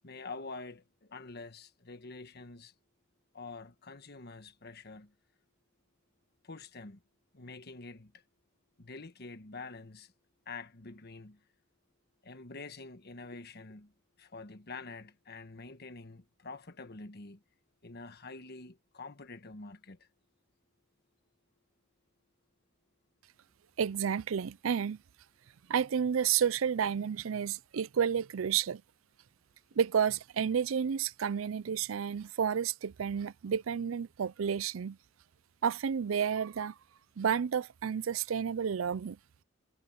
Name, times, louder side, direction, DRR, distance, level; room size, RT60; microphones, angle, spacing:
voice 1, 0.0-2.7 3.3-5.1 6.4-7.0 7.3-8.1 8.8-10.1 10.5-11.4 12.2-13.9 14.2-17.4 17.8-20.1, left 3 dB, 55° left, 1.4 m, -46 dB
voice 2, 23.8-25.0 25.7-28.8 29.8-35.0 35.6-36.7 37.2-39.2, right 7 dB, 90° right, 0.5 m, -31 dB
head